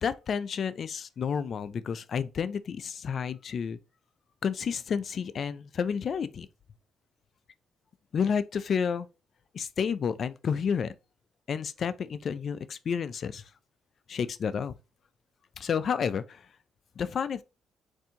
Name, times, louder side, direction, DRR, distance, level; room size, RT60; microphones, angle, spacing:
voice 1, 0.0-3.8 4.4-6.5 8.1-9.1 9.5-10.9 11.5-13.4 14.1-14.7 15.6-16.4 17.0-17.4, left 6 dB, 55° left, 0.4 m, -30 dB
4.2 x 2.6 x 3.6 m
cardioid pair, 90°, 0 cm